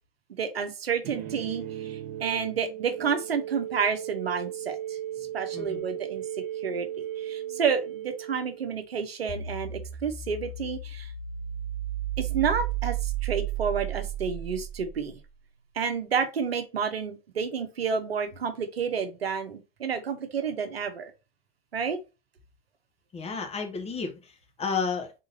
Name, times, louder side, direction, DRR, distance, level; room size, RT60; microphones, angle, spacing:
voice 1, 0.4-5.0 5.3-6.2 6.6-6.9 7.2-11.1 12.2-15.2 15.7-21.1 21.7-22.0, right 6 dB, 80° right, 0.9 m, -30 dB
sound 1, 1.0-9.0, right 11 dB, 50° right, 1.1 m, -36 dB
voice 2, 5.5-5.8 23.1-25.1, left 5 dB, 20° left, 1.1 m, -32 dB
sound 2, 9.3-15.5, right 10 dB, 10° right, 1.2 m, -33 dB
3.8 x 3.8 x 2.5 m
figure-of-eight pair, 90°, 30 cm